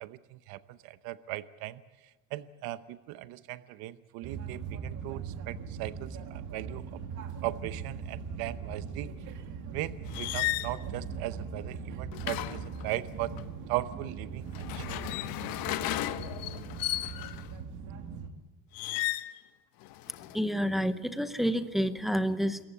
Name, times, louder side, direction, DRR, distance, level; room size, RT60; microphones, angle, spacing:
voice 1, 0.0-6.8 7.4-9.1 9.7-13.3 13.7-15.5, right 16 dB, 75° right, 13 dB, 0.9 m, -38 dB
sound 1, 4.2-18.3, right 6 dB, 50° right, 2.4 m, -40 dB
sound 2, 10.1-10.7 12.1-13.4 14.5-17.5 18.7-19.4 19.8-20.4, left 16 dB, 70° left, 1.0 m, -34 dB
voice 2, 20.3-22.6, equal, ahead, 10 dB, 0.8 m, -29 dB
26.5 x 15.0 x 8.2 m, 1.2 s
cardioid pair, 155°, 37 cm